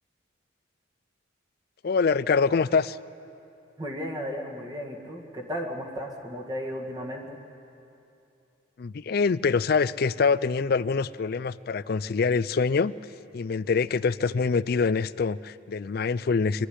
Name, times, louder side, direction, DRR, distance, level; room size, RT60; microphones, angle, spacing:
voice 1, 1.8-3.0 8.8-12.9 13.3-16.7, left 5 dB, 50° left, 17 dB, 0.4 m, -25 dB
voice 2, 3.8-7.4, equal, 20° right, 1 dB, 1.9 m, -34 dB
22.5 x 13.0 x 9.9 m, 2.9 s
head